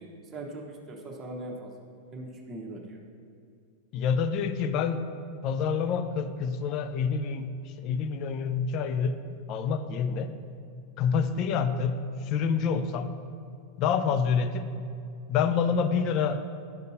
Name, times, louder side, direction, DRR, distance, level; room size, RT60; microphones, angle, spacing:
voice 1, 0.0-1.8 2.1-3.0, right 1 dB, 20° right, -2 dB, 1.0 m, -40 dB
voice 2, 3.9-5.0 5.4-9.2 9.5-10.3 11.0-13.1 13.8-14.7 15.3-16.5, left 6 dB, 40° left, 10 dB, 0.4 m, -27 dB
10.5 x 6.6 x 2.7 m, 2.4 s
figure-of-eight pair, 90°, 0 cm